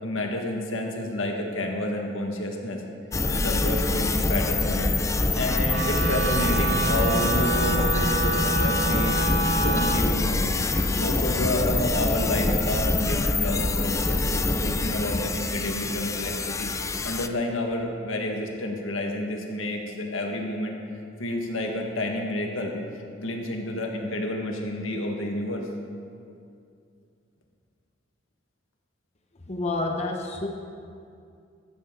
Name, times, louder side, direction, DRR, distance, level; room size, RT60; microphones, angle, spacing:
voice 1, 0.0-2.8 3.3-4.9 5.4-9.2 9.5-10.6 11.0-16.7 17.0-20.8 21.2-22.7 23.2-25.7, left 1 dB, 90° left, 1 dB, 1.7 m, -29 dB
sound 1, 3.1-17.3, left 2 dB, 15° left, 0.4 m, -25 dB
Wind instrument woodwind instrument, 5.6-10.0, right 3 dB, 75° right, 1.3 m, -27 dB
voice 2, 29.5-30.5, left 2 dB, 35° left, 2 dB, 0.9 m, -28 dB
14.0 x 13.0 x 3.9 m, 2.4 s
head